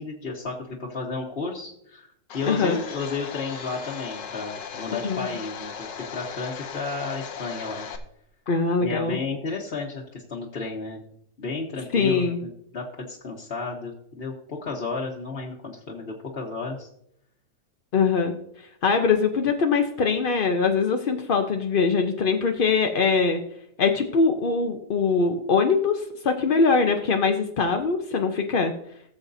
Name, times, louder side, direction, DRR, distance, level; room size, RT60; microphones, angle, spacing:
voice 1, 0.0-2.1 2.3-7.8 8.8-11.0 11.4-16.9, left 4 dB, 40° left, -3 dB, 1.2 m, -32 dB
Domestic sounds home sounds, 2.3-8.0, left 7 dB, 90° left, 1.6 m, -37 dB
voice 2, 2.5-2.8 5.0-5.3 8.5-9.2 11.9-12.4 17.9-18.3 18.8-23.4 23.8-28.7, left 5 dB, 65° left, 4 dB, 0.5 m, -22 dB
18.0 x 7.2 x 2.7 m, 0.73 s
omnidirectional pair, 1.9 m